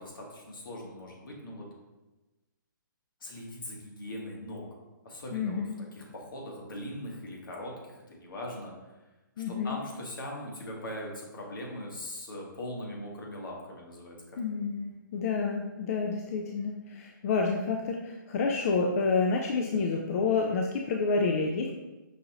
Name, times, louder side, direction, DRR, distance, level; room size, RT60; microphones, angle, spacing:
voice 1, 0.0-1.7 3.2-4.7 5.0-5.6 5.9-8.7 9.5-14.7, left 1 dB, 75° left, -2 dB, 1.3 m, -40 dB
voice 2, 5.3-5.7 9.4-9.8 14.4-21.7, left 4 dB, 45° left, 1 dB, 0.4 m, -29 dB
5.5 x 2.5 x 2.9 m, 1.1 s
hypercardioid pair, 150°, 11 cm